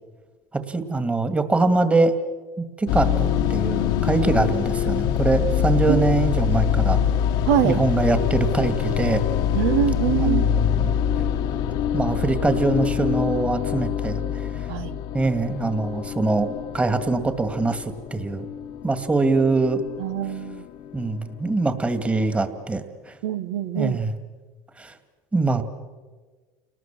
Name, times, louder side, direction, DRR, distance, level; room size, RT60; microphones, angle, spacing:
voice 1, 0.5-2.1 2.6-7.0 7.6-9.2 10.2-10.9 11.9-14.7 15.1-17.8 18.1-18.5 18.8-19.8 20.9-23.2 23.7-24.1 24.8-24.9 25.3-25.6, right 3 dB, 15° right, 10 dB, 2.2 m, -23 dB
sound 1, 2.9-21.2, left 9 dB, 65° left, 1.4 m, -25 dB
voice 2, 7.5-7.8 9.5-10.4 14.7-15.0 20.0-20.6 23.2-24.0, right 11 dB, 75° right, 12 dB, 1.4 m, -24 dB
29.5 x 19.5 x 7.6 m, 1.4 s
supercardioid pair, 100°, 8 cm